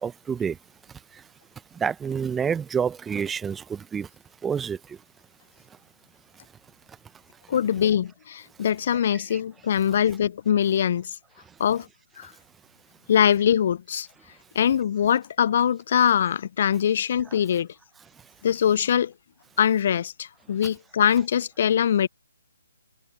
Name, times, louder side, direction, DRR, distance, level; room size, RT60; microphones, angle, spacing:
voice 1, 0.0-0.6 1.8-4.1 4.4-4.8 9.3-9.4, right 7 dB, 10° right, 0.7 m, -28 dB
voice 2, 7.5-11.1 11.6-11.9 12.2-12.3 13.1-14.1 14.6-17.7 18.4-19.1 19.6-22.1, left 9 dB, 45° left, 0.3 m, -22 dB
figure-of-eight pair, 145°, 0 cm